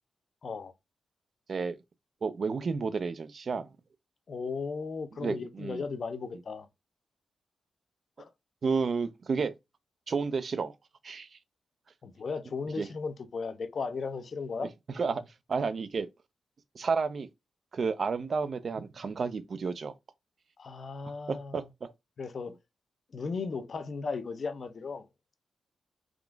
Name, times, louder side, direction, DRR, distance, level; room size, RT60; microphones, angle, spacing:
voice 1, 0.4-0.7 4.3-6.7 8.2-8.3 12.0-14.7 20.6-21.6 22.2-22.6 23.1-25.1, left 4 dB, 60° left, 0.5 m, -36 dB
voice 2, 2.2-3.7 5.2-5.8 8.6-9.6 10.1-10.7 11.0-11.4 12.8-12.9 14.9-16.1 16.7-17.3 17.7-19.9 21.3-21.9, right 5 dB, 60° right, 0.4 m, -31 dB
3.6 x 2.4 x 2.2 m
supercardioid pair, 50°, 0 cm